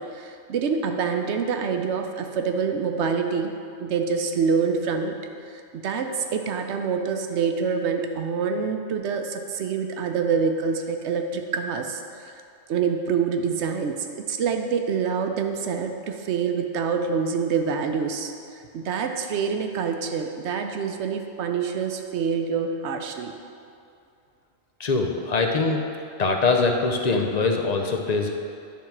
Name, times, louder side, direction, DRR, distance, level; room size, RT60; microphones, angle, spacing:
voice 1, 0.0-3.5 3.8-5.1 5.7-12.3 12.7-13.9 14.3-18.3 18.7-23.3, right 6 dB, 70° right, 5 dB, 0.9 m, -26 dB
voice 2, 24.8-25.8 26.2-28.3, left 3 dB, 45° left, 3 dB, 0.6 m, -23 dB
10.5 x 3.6 x 5.9 m, 2.5 s
omnidirectional pair, 1.2 m